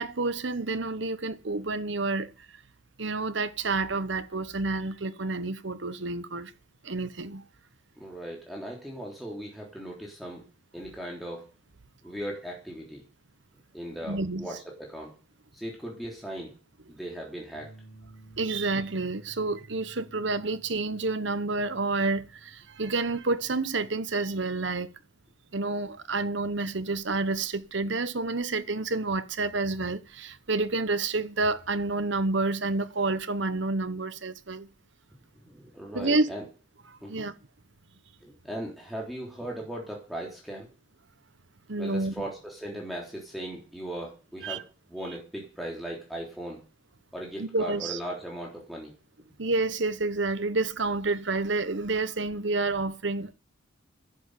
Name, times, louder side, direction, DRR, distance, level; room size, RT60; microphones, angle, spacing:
voice 1, 0.0-2.3 3.0-6.5 6.8-7.5 14.1-14.5 18.4-24.9 25.5-34.7 35.9-36.3 37.1-37.3 41.7-42.1 44.4-44.6 47.4-48.0 49.4-53.3, right 3 dB, 60° right, 1.2 m, -29 dB
voice 2, 8.0-10.5 10.7-11.5 12.0-13.0 13.7-15.1 15.5-16.5 16.9-17.7 35.4-36.4 37.0-37.3 38.2-40.7 41.8-46.6 47.1-48.9, right 1 dB, ahead, 3.4 m, -38 dB
sound 1, 17.5-24.2, right 2 dB, 65° left, 2.8 m, -54 dB
11.5 x 8.2 x 9.2 m
head